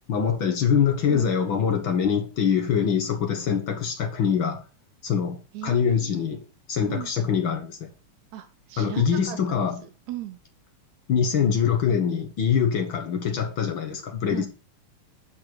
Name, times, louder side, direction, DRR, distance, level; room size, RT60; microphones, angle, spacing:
voice 1, 0.1-4.6 5.0-6.4 6.7-7.9 8.8-9.8 11.1-14.5, left 7 dB, 55° left, 1.5 m, -24 dB
voice 2, 5.5-6.2 6.9-7.1 8.3-9.6 10.1-10.4 14.3-14.5, right 12 dB, 75° right, 2.1 m, -37 dB
10.5 x 4.1 x 6.7 m
omnidirectional pair, 3.5 m